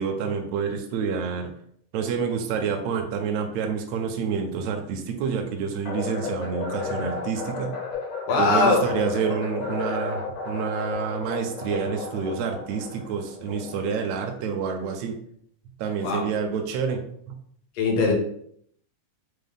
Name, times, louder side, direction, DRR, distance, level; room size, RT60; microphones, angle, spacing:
voice 1, 0.0-1.5 1.9-7.7 8.4-15.2 15.8-17.4, right 6 dB, 80° right, 4 dB, 1.7 m, -28 dB
sound 1, 5.9-14.1, left 4 dB, 85° left, 2.5 m, -33 dB
voice 2, 8.3-8.8 16.0-16.2 17.8-18.1, left 3 dB, 70° left, 0 dB, 1.8 m, -20 dB
5.3 x 2.1 x 3.5 m, 0.67 s
omnidirectional pair, 3.5 m